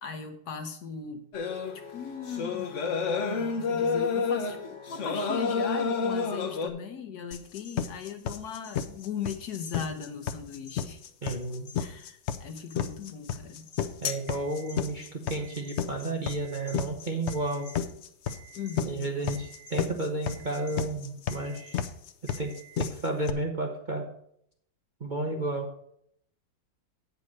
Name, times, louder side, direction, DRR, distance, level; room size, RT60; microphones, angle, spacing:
voice 1, 0.0-1.2 1.7-2.8 3.1-11.0 11.8-13.7 18.5-19.1, left 6 dB, 60° left, 7 dB, 1.3 m, -39 dB
sound 1, 1.3-6.7, left 5 dB, 45° left, 1.1 m, -29 dB
sound 2, 7.3-23.3, left 8 dB, 85° left, 0.6 m, -33 dB
voice 2, 11.2-11.7 14.0-17.7 18.8-21.8 22.4-24.1 25.0-25.7, right 2 dB, 30° right, 0 dB, 1.0 m, -32 dB
Alarm, 14.3-14.8 15.3-15.8 16.2-16.8 17.3-17.8 18.3-18.8 19.3-19.8 20.3-20.8 21.3-21.8 22.3-22.8, right 12 dB, 90° right, 2.0 m, -53 dB
8.9 x 5.4 x 6.3 m, 0.68 s
omnidirectional pair, 2.0 m